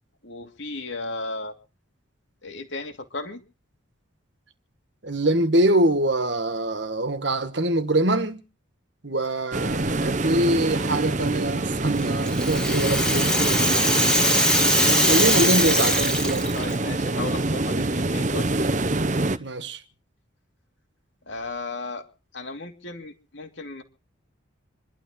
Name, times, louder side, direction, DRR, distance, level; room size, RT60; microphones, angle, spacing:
voice 1, 0.2-1.5 2.4-3.4 16.5-18.5 21.3-22.0 22.3-23.8, left 3 dB, 65° left, 2.6 m, -35 dB
voice 2, 5.0-8.4 9.0-13.3 15.0-16.8 19.4-19.8, right 1 dB, 60° right, 1.6 m, -24 dB
sound 1, 9.5-19.4, right 2 dB, 35° right, 0.8 m, -25 dB
Rattle (instrument), 12.0-16.7, left 1 dB, 5° left, 1.9 m, -22 dB
28.0 x 12.0 x 3.8 m
head